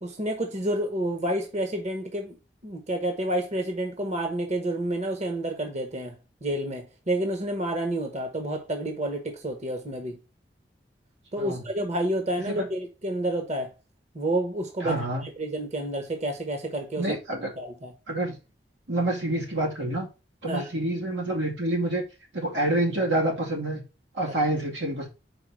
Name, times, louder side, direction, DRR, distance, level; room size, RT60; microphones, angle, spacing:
voice 1, 0.0-2.4 2.6-6.1 6.4-10.2 11.3-13.7 14.1-15.0 15.4-17.2 17.6-17.9 20.5-20.7, right 1 dB, 40° right, 1.1 m, -29 dB
voice 2, 14.8-15.2 17.0-17.5 18.1-18.4 18.9-20.1 20.4-22.0 22.3-23.8 24.1-25.1, right 1 dB, 90° right, 2.4 m, -27 dB
4.8 x 4.8 x 6.2 m
head